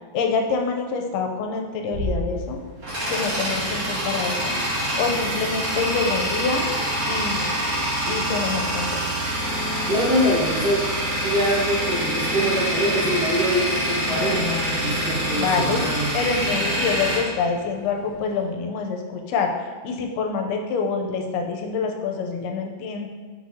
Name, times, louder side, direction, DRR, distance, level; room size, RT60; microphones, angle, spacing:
voice 1, 0.1-2.6 3.1-4.5 5.0-6.7 7.1-7.4 8.1-9.1 14.1-15.0 15.3-15.8 16.1-19.5 19.8-23.1, left 5 dB, 80° left, 2 dB, 2.5 m, -26 dB
Bass drum, 1.9-3.4, equal, 55° right, 3.0 m, -31 dB
Tools, 2.3-18.2, equal, 40° right, 1.1 m, -25 dB
voice 2, 9.9-10.8 11.2-16.1, equal, 90° right, -9 dB, 1.3 m, -24 dB
6.4 x 6.1 x 2.7 m, 1.5 s
omnidirectional pair, 4.8 m